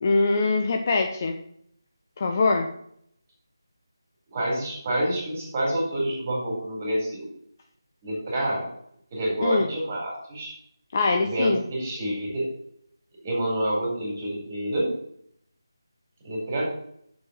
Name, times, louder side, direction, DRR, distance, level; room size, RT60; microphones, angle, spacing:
voice 1, 0.0-1.4 2.2-2.7 9.4-9.7 10.9-11.6, left 3 dB, 35° left, 4 dB, 0.9 m, -23 dB
voice 2, 4.3-7.3 8.0-8.7 9.1-10.5 11.2-12.4 13.2-14.9 16.2-16.6, right 1 dB, 25° right, -3 dB, 4.2 m, -28 dB
7.3 x 6.7 x 6.6 m, 0.68 s
figure-of-eight pair, 160°, 2 cm